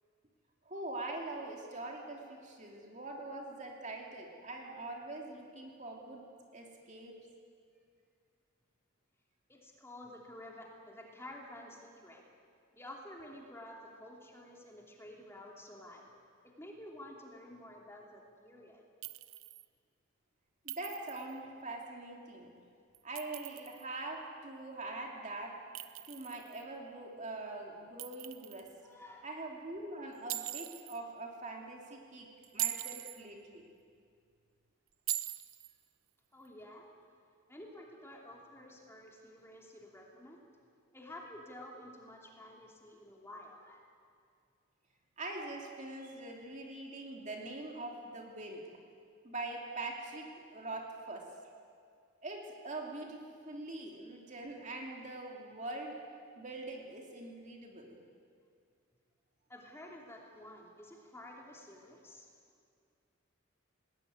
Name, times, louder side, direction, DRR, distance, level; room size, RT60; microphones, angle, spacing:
voice 1, 0.6-6.3 6.5-7.2 20.6-22.5 23.0-25.6 26.1-28.7 29.2-33.7 45.2-48.7 49.2-51.3 52.2-56.0 56.4-58.0, right 2 dB, 35° right, 0 dB, 2.7 m, -43 dB
voice 2, 9.5-12.2 12.7-16.1 16.4-18.8 28.8-29.3 36.3-36.9 37.5-40.4 40.9-43.9 59.5-62.3, left 1 dB, 10° left, -1 dB, 2.8 m, -51 dB
Chink clink, 19.0-19.7 20.7-21.3 22.9-23.8 25.8-26.6 28.0-28.7 30.3-31.0 32.4-33.2 35.1-35.7, right 14 dB, 70° right, 0.8 m, -40 dB
20.0 x 19.5 x 9.5 m, 2.2 s
head